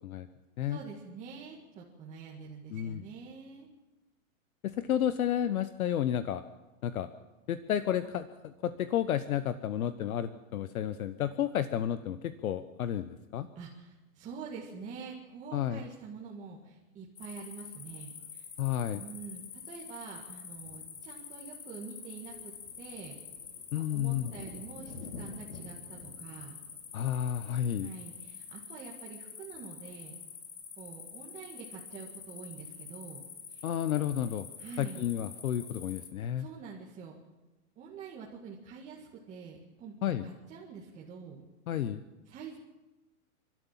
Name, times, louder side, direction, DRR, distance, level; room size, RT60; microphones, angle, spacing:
voice 1, 0.7-3.7 13.5-18.5 18.9-23.2 23.7-26.6 27.8-30.2 30.8-33.2 33.5-33.6 34.6-35.1 36.4-37.2 37.8-41.5 42.3-42.6, right 5 dB, 15° right, -4 dB, 2.0 m, -46 dB
voice 2, 2.7-3.0 4.6-6.4 6.8-7.1 7.5-13.5 15.5-15.8 18.6-19.0 23.7-24.3 26.9-27.9 33.6-34.4 34.8-36.5 40.0-40.2 41.7-42.0, left 10 dB, 70° left, 12 dB, 1.1 m, -31 dB
sound 1, 17.2-36.1, left 6 dB, 85° left, 3.6 m, -46 dB
29.5 x 12.5 x 7.4 m, 1.1 s
hypercardioid pair, 165°, 44 cm